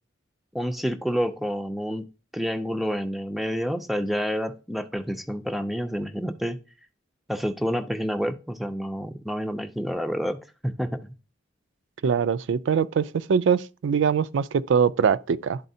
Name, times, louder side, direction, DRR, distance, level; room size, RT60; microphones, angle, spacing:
voice 1, 0.5-2.1 2.3-6.6 7.3-11.1, equal, ahead, 0.4 m, -29 dB
voice 2, 12.0-15.6, right 6 dB, 75° right, 0.3 m, -23 dB
11.0 x 4.1 x 2.7 m
head